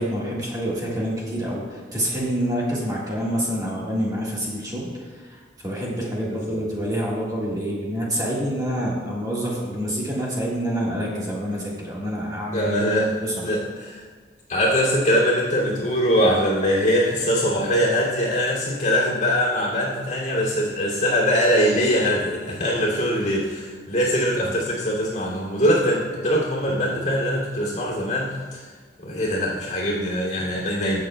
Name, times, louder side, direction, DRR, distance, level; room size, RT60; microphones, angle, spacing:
voice 1, 0.0-4.9 5.6-12.8 13.1-13.5 24.4-24.5 26.7-26.8, equal, 20° right, -6 dB, 1.5 m, -27 dB
voice 2, 6.2-6.6 12.5-13.1 13.4-14.0 14.5-28.6 29.0-31.0, equal, 40° left, -4 dB, 2.5 m, -22 dB
15.0 x 6.5 x 2.2 m, 1.5 s
head